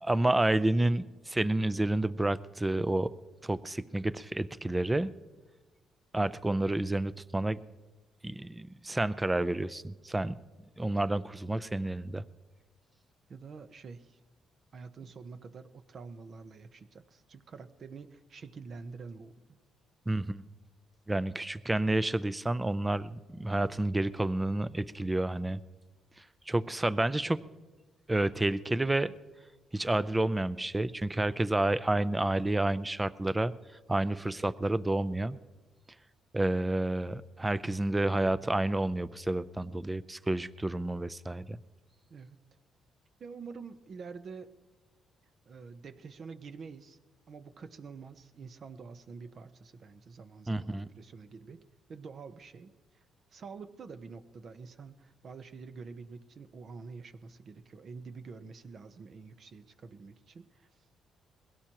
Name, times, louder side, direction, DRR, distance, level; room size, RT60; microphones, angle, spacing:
voice 1, 0.0-3.1 3.4-5.1 6.1-7.6 8.2-10.4 10.8-12.2 20.1-20.5 21.1-25.6 26.5-27.4 28.1-29.1 29.7-33.5 33.9-35.4 36.3-41.6 50.5-50.9, right 2 dB, 15° right, 16 dB, 0.5 m, -29 dB
voice 2, 13.3-14.2 14.7-19.3 42.1-42.4 43.2-44.5 45.5-47.0 47.3-51.6 51.9-53.0 53.3-60.7, right 5 dB, 50° right, 10 dB, 0.9 m, -47 dB
22.0 x 16.5 x 3.0 m, 1.2 s
cardioid pair, 90°, 0 cm